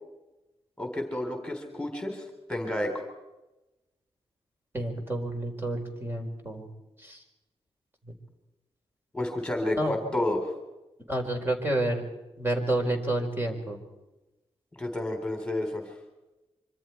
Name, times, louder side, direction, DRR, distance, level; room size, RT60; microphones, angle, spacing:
voice 1, 0.8-3.0 9.1-10.5 14.7-15.9, left 1 dB, 10° left, 4 dB, 3.9 m, -31 dB
voice 2, 4.7-6.7 7.0-7.2 9.8-10.0 11.1-12.0 12.4-13.8, right 1 dB, 20° right, 2 dB, 4.6 m, -29 dB
26.0 x 25.5 x 4.6 m, 1.0 s
wide cardioid pair, 120°, 11 cm